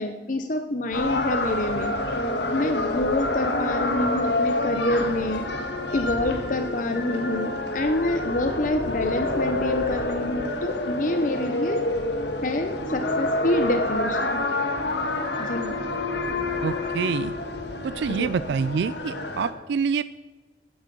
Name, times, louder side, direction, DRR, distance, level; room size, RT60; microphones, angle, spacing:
voice 1, 0.0-2.0 2.5-5.5 5.9-11.9 12.4-14.4 15.4-15.8 18.1-18.4, left 1 dB, 45° left, 6 dB, 0.7 m, -27 dB
sound 1, 0.9-19.5, left 2 dB, 75° left, 1.5 m, -28 dB
voice 2, 16.6-17.3 17.8-20.0, right 6 dB, 70° right, 15 dB, 0.3 m, -26 dB
15.0 x 9.6 x 5.4 m, 1.3 s
head